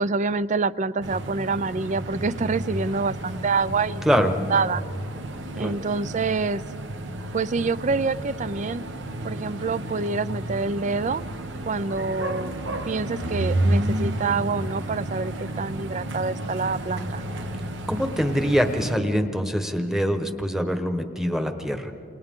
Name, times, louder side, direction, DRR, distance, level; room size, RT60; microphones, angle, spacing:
voice 1, 0.0-4.8 5.5-6.6 7.3-8.9 9.2-11.2 11.7-12.5 12.8-17.2, right 4 dB, 35° right, 17 dB, 0.4 m, -26 dB
sound 1, 1.0-18.9, right 1 dB, 60° right, 1.1 m, -31 dB
voice 2, 17.9-21.9, equal, ahead, 6 dB, 1.1 m, -24 dB
29.0 x 28.5 x 3.7 m, 2.4 s
head